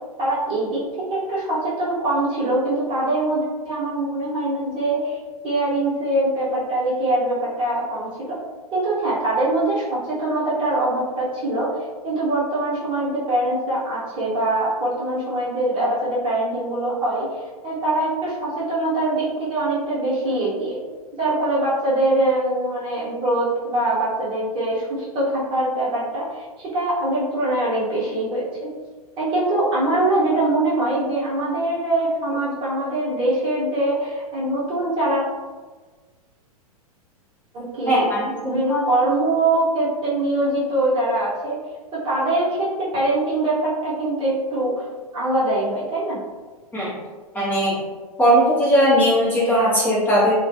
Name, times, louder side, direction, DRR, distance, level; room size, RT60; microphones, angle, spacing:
voice 1, 0.2-5.2 5.4-8.4 8.7-11.8 12.0-17.3 17.6-20.8 21.2-28.7 29.2-35.2 37.5-38.1 38.4-41.6 41.9-44.8 45.1-46.2, right 1 dB, 25° right, -7 dB, 1.0 m, -23 dB
voice 2, 37.9-38.8 46.7-46.9 47.3-47.8 48.2-50.3, equal, 10° left, -10 dB, 0.7 m, -18 dB
2.3 x 2.2 x 2.7 m, 1.4 s
figure-of-eight pair, 105°, 19 cm